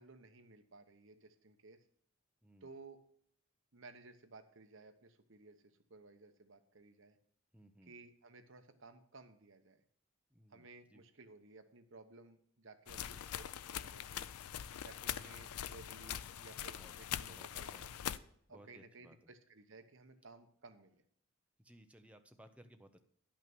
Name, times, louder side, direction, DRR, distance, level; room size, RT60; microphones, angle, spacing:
voice 1, 0.0-1.8 2.6-3.0 3.7-7.2 7.9-9.8 10.5-14.3 14.8-17.9 18.5-21.0, right 3 dB, 55° right, 8 dB, 1.0 m, -57 dB
voice 2, 7.5-8.0 10.3-11.0 12.9-13.3 16.7-16.9 17.2-17.9 18.5-19.2 21.6-23.0, equal, 5° right, 6 dB, 0.7 m, -61 dB
sound 1, 12.9-18.2, left 10 dB, 85° left, 0.4 m, -43 dB
11.0 x 5.9 x 6.0 m, 0.64 s
head